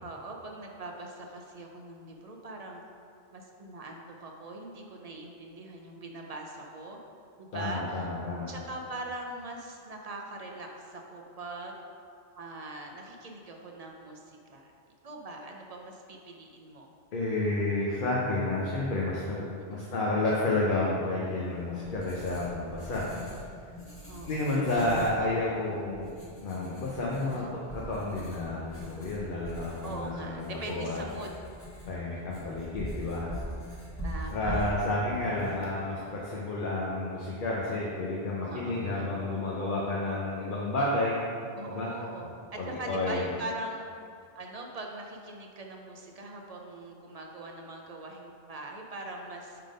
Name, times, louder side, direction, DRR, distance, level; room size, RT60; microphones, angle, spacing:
voice 1, 0.0-2.8 3.3-7.0 7.4-8.1 8.5-11.8 12.3-14.7 15.0-16.9 19.6-19.9 23.0-23.4 24.1-24.8 27.2-27.6 29.8-31.3 34.0-35.5 38.4-39.0 41.5-42.3 42.7-43.9 44.3-49.6, right 2 dB, 45° right, 1 dB, 0.5 m, -42 dB
voice 2, 7.5-8.5 17.1-23.1 24.3-26.1 26.4-31.0 31.9-33.3 34.3-41.2 41.7-41.9 42.6-43.3, left 2 dB, 50° left, -5 dB, 0.8 m, -30 dB
Writing, 21.4-36.2, equal, 15° left, 0.9 m, -42 dB
5.6 x 3.7 x 5.1 m, 2.4 s
omnidirectional pair, 1.2 m